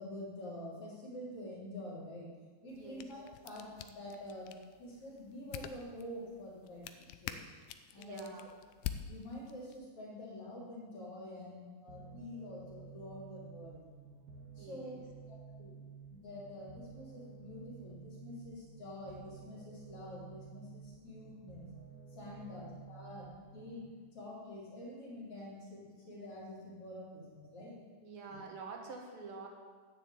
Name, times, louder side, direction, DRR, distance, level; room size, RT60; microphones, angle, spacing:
voice 1, 0.0-2.3 2.6-4.5 4.8-7.4 7.9-8.4 9.0-13.8 14.6-15.0 15.3-15.8 16.1-21.7 22.1-27.8 28.3-28.4, left 1 dB, 40° left, -5 dB, 4.1 m, -47 dB
voice 2, 2.6-3.1 8.0-8.5 14.6-15.0 22.3-22.7 28.0-29.5, right 4 dB, 50° right, 2 dB, 1.7 m, -48 dB
sound 1, 2.7-9.8, left 10 dB, 80° left, 2.2 m, -47 dB
sound 2, 11.9-23.9, right 5 dB, 90° right, 0.8 m, -53 dB
12.0 x 6.8 x 8.9 m, 1.5 s
omnidirectional pair, 4.3 m